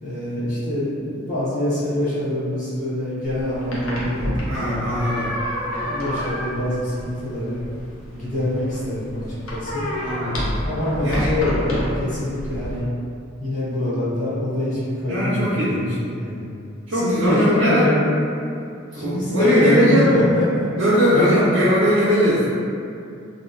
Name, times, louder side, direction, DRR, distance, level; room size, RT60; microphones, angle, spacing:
voice 1, 0.0-4.8 5.4-7.6 8.1-9.9 10.6-12.9 13.4-15.4 15.7-16.4 17.0-18.1 18.9-20.7 21.1-21.3, left 1 dB, 40° left, -10 dB, 0.7 m, -24 dB
sound 1, 3.3-12.8, equal, 85° left, 0.5 m, -29 dB
voice 2, 4.5-5.3 10.0-10.5 11.0-11.4 15.1-16.0 16.9-17.9 18.9-20.2 20.8-22.5, equal, 65° right, -10 dB, 0.5 m, -20 dB
2.4 x 2.1 x 2.3 m, 2.5 s
head